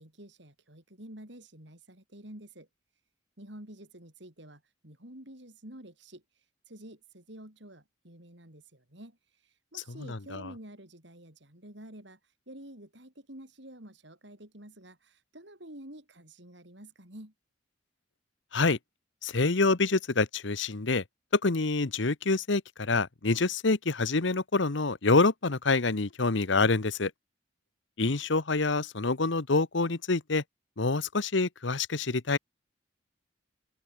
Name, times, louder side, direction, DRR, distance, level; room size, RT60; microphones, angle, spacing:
voice 1, 0.0-2.7 3.4-17.3, right 1 dB, 60° right, 5.2 m, -49 dB
voice 2, 10.0-10.5 18.5-18.8 19.2-21.0 21.3-27.1 28.0-30.4 30.8-32.4, left 3 dB, 65° left, 1.1 m, -26 dB
open air
head